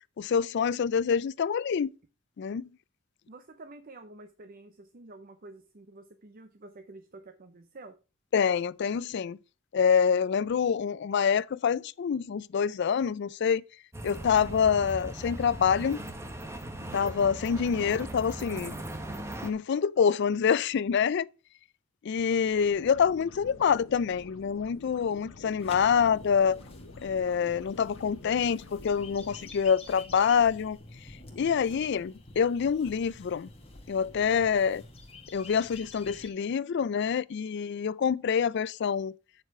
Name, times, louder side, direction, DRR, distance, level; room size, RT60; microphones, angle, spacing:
voice 1, 0.2-1.9 2.4-2.7 8.3-9.4 9.7-13.6 14.0-16.0 16.9-18.7 19.4-21.3 22.0-26.6 27.0-30.8 31.4-33.5 33.9-34.8 35.3-39.1, left 7 dB, 60° left, 0.4 m, -26 dB
voice 2, 3.3-8.0, right 2 dB, 45° right, 0.6 m, -49 dB
sound 1, 13.9-19.5, right 1 dB, 15° right, 0.9 m, -39 dB
sound 2, 22.3-29.5, left 3 dB, 90° left, 0.8 m, -49 dB
sound 3, 25.6-36.3, left 2 dB, 30° left, 1.7 m, -48 dB
9.1 x 4.9 x 4.7 m
head